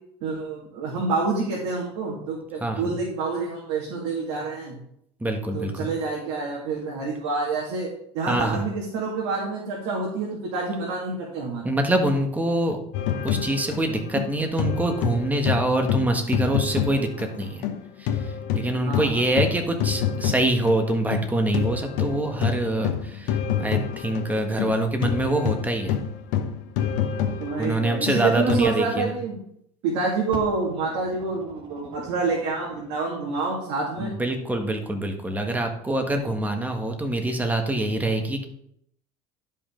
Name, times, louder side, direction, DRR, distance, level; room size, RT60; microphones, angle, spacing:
voice 1, 0.2-4.8 5.5-7.9 8.1-11.6 18.8-19.4 27.4-29.4 29.8-34.2, right 4 dB, 80° right, -3 dB, 2.3 m, -28 dB
voice 2, 2.6-2.9 5.2-5.9 8.3-8.6 11.6-12.8 13.2-17.7 18.0-18.1 18.5-26.0 27.6-29.2 34.0-38.4, right 1 dB, 10° right, 4 dB, 1.5 m, -25 dB
sound 1, 12.9-17.8 18.1-28.6, left 8 dB, 75° left, 1.0 m, -27 dB
Fire, 30.3-33.1 34.0-34.1, right 4 dB, 35° right, 1.4 m, -43 dB
11.5 x 5.4 x 3.8 m, 0.72 s
supercardioid pair, 105°, 14 cm